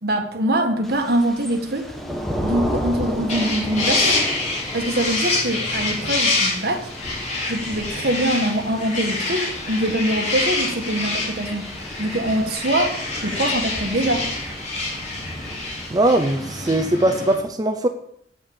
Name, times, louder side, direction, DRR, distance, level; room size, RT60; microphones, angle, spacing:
voice 1, 0.0-1.9 2.4-6.9 7.4-11.7 12.0-14.3, right 1 dB, 65° right, 4 dB, 1.8 m, -24 dB
Thunder / Rain, 0.8-16.8, equal, ahead, 1.5 m, -33 dB
sound 1, 3.3-17.3, left 2 dB, 45° left, 3.9 m, -26 dB
voice 2, 15.9-17.9, right 1 dB, 20° right, 6 dB, 0.6 m, -20 dB
8.5 x 8.3 x 7.1 m, 0.71 s
head